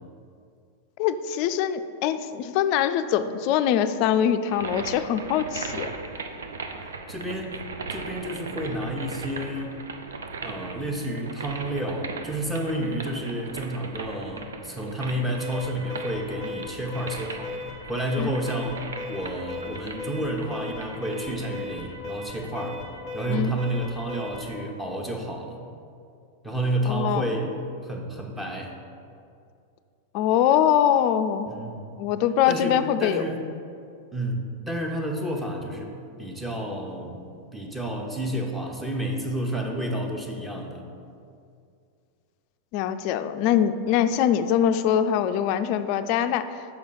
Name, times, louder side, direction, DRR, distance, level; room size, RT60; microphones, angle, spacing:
voice 1, 1.0-5.9 18.2-18.3 23.3-23.5 26.9-27.2 30.1-31.5 32.0-33.3 42.7-46.6, left 9 dB, 50° left, 9 dB, 0.3 m, -23 dB
sound 1, 4.5-22.0, right 4 dB, 80° right, 0.5 m, -39 dB
voice 2, 7.1-7.5 7.9-9.8 10.4-17.6 17.9-22.8 23.1-25.6 26.4-27.6 27.8-28.8 31.5-31.9 32.5-33.4 34.1-37.2 37.5-40.9, right 1 dB, 10° right, 1 dB, 1.0 m, -30 dB
Alarm, 15.4-24.6, left 3 dB, 55° right, 1.7 m, -37 dB
6.1 x 4.8 x 5.6 m, 2.4 s
hypercardioid pair, 100°, 0 cm